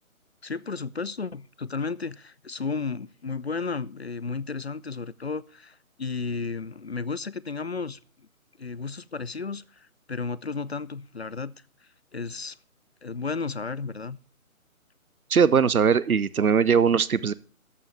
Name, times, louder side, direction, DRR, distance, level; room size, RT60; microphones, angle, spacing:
voice 1, 0.4-8.3 8.6-11.5 12.1-12.6 13.0-14.2, left 4 dB, 50° left, 20 dB, 0.4 m, -33 dB
voice 2, 15.3-17.3, right 6 dB, 85° right, 19 dB, 0.6 m, -20 dB
13.5 x 5.5 x 6.2 m, 0.41 s
figure-of-eight pair, 150°, 43 cm